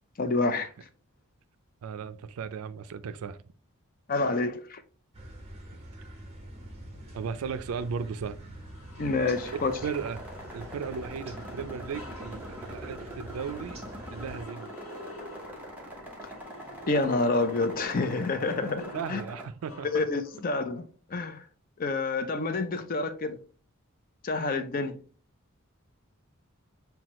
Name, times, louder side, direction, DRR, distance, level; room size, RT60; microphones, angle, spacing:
voice 1, 0.2-0.7 4.1-4.8 9.0-9.7 16.9-19.2 19.8-21.4 21.8-23.4 24.2-25.0, left 3 dB, 40° left, 0.4 m, -28 dB
voice 2, 1.8-3.4 7.1-8.4 9.8-10.2 10.5-13.8 14.1-14.7 18.9-20.1, right 6 dB, 75° right, 0.4 m, -36 dB
sound 1, 5.1-14.4, right 1 dB, 30° right, 1.2 m, -45 dB
sound 2, 7.8-7.9 8.5-20.5, left 1 dB, 65° left, 1.0 m, -48 dB
sound 3, 9.3-19.4, right 1 dB, 10° right, 0.9 m, -44 dB
5.8 x 2.3 x 3.0 m
head